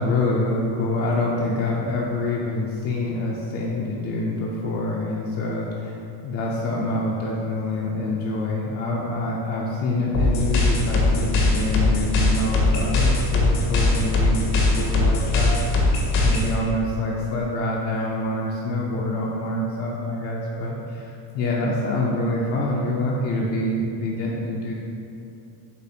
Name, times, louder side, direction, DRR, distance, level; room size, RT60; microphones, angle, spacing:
voice 1, 0.0-15.9 16.2-24.7, left 2 dB, 35° left, -4 dB, 0.4 m, -26 dB
sound 1, 10.1-16.5, left 2 dB, 80° left, 1.0 m, -20 dB
6.7 x 2.4 x 2.7 m, 2.6 s
cardioid pair, 120°, 46 cm